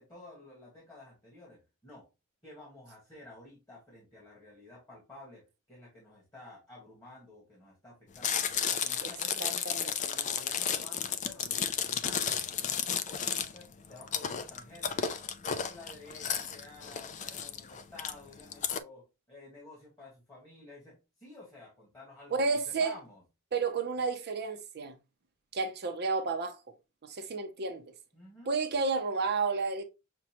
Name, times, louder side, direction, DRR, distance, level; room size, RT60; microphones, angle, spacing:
voice 1, 0.0-2.1 2.4-8.3 8.6-15.1 15.4-23.2 28.1-28.6, left 2 dB, 15° left, 1.5 m, -52 dB
Chewing mastication, 8.2-18.8, left 8 dB, 35° left, 0.3 m, -33 dB
voice 2, 9.4-9.9 22.3-23.0 23.5-25.0 25.5-26.6 27.0-27.8 28.5-29.8, right 4 dB, 50° right, 0.6 m, -31 dB
6.1 x 2.2 x 2.8 m
head